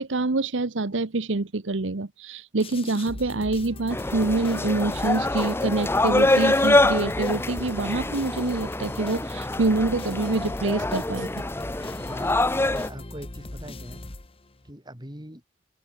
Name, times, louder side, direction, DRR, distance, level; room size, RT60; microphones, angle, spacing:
voice 1, 0.0-11.3, right 2 dB, 75° right, 1.0 m, -26 dB
sound 1, 2.6-14.7, left 1 dB, 30° left, 1.2 m, -39 dB
sound 2, 3.9-12.9, left 2 dB, 15° left, 0.9 m, -25 dB
voice 2, 11.9-12.4 12.7-14.0 14.6-15.4, right 1 dB, 25° right, 7.8 m, -42 dB
head